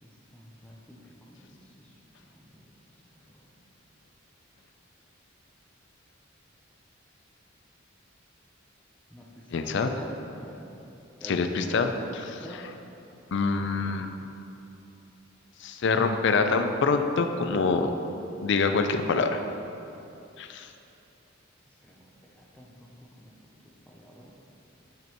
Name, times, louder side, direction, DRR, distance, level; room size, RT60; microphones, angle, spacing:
voice 1, 0.0-2.8 3.3-3.5 9.1-10.7 11.2-12.8 13.3-13.4 13.8-14.3 21.8-23.5 23.9-24.4, equal, 5° left, -3 dB, 0.6 m, -48 dB
voice 2, 9.5-9.9 11.2-11.9 13.3-14.1 15.6-17.9 18.4-19.4 20.4-20.7, left 4 dB, 60° left, 7 dB, 0.4 m, -25 dB
9.1 x 5.2 x 3.0 m, 2.8 s
head